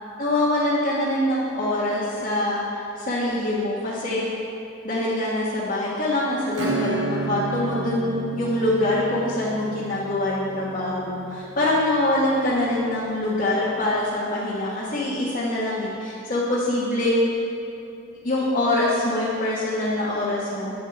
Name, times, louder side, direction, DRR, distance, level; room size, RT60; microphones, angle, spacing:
voice 1, 0.2-2.6 3.0-4.3 4.8-17.3 18.2-20.7, left 1 dB, 45° left, -8 dB, 1.4 m, -24 dB
Acoustic guitar / Strum, 6.5-12.8, right 2 dB, 65° right, 1.2 m, -31 dB
9.8 x 8.7 x 3.5 m, 2.7 s
head